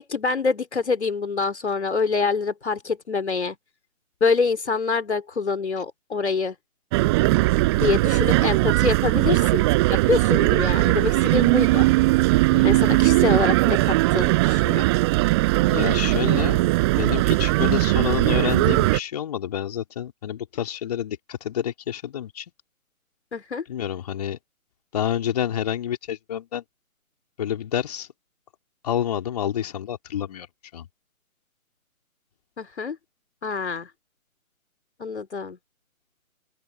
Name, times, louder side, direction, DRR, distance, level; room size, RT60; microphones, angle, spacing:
voice 1, 0.0-3.6 4.2-6.5 7.8-11.9 12.6-14.9 23.3-23.6 32.6-33.0 33.4-33.9 35.0-35.6, left 4 dB, 50° left, 3.2 m, -26 dB
sound 1, 6.9-19.0, right 21 dB, 20° right, 6.5 m, -19 dB
voice 2, 12.5-13.0 15.6-22.5 23.7-24.4 24.9-26.6 27.4-28.1 28.8-30.5 30.7-30.9, left 10 dB, 25° left, 4.0 m, -28 dB
open air
figure-of-eight pair, 150°, 43 cm